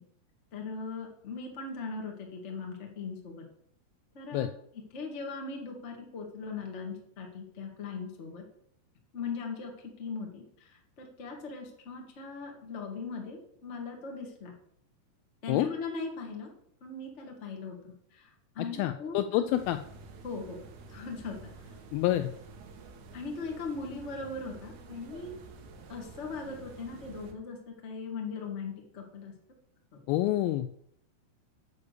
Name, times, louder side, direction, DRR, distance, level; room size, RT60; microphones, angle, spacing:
voice 1, 0.5-3.4 4.1-4.4 4.9-8.4 9.1-14.5 15.4-16.5 16.8-19.5 20.2-20.6 20.9-21.5 23.1-25.3 25.9-27.6 27.8-29.3, left 4 dB, 65° left, 1 dB, 0.6 m, -39 dB
voice 2, 18.8-19.8 21.9-22.3 30.1-30.7, left 14 dB, 90° left, 10 dB, 2.1 m, -27 dB
sound 1, 19.5-27.3, right 3 dB, 65° right, 2.0 m, -50 dB
8.4 x 6.9 x 6.6 m, 0.69 s
omnidirectional pair, 4.8 m